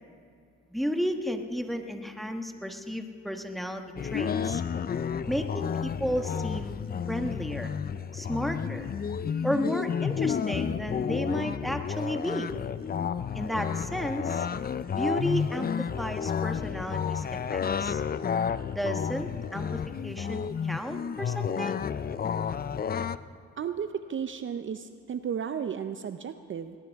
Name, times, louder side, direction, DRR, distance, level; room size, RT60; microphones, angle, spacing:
voice 1, 0.7-3.8 4.1-4.6 5.3-6.8 7.1-7.7 8.1-8.9 9.4-12.5 13.3-14.5 15.0-17.2 17.5-18.0 18.7-21.8, equal, ahead, 5 dB, 1.3 m, -33 dB
sound 1, 4.0-23.2, left 7 dB, 30° left, 0.5 m, -31 dB
voice 2, 23.6-26.8, right 7 dB, 40° right, 10 dB, 0.6 m, -34 dB
20.5 x 20.0 x 3.6 m, 2.4 s
cardioid pair, 90°, 30 cm